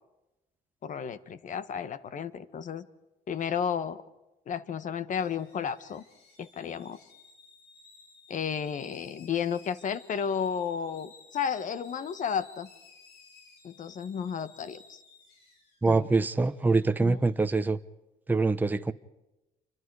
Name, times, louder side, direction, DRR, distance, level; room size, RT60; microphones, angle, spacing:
voice 1, 0.8-2.8 3.3-4.0 4.5-6.0 6.4-7.0 8.3-12.7 13.6-15.0 15.9-16.1 17.0-17.2, left 7 dB, 50° left, 1.6 m, -32 dB
sound 1, 5.2-17.4, left 4 dB, 75° left, 7.7 m, -57 dB
voice 2, 15.8-17.8 18.3-18.9, right 3 dB, 10° right, 0.9 m, -24 dB
29.5 x 25.5 x 4.9 m
cardioid pair, 110°, 17 cm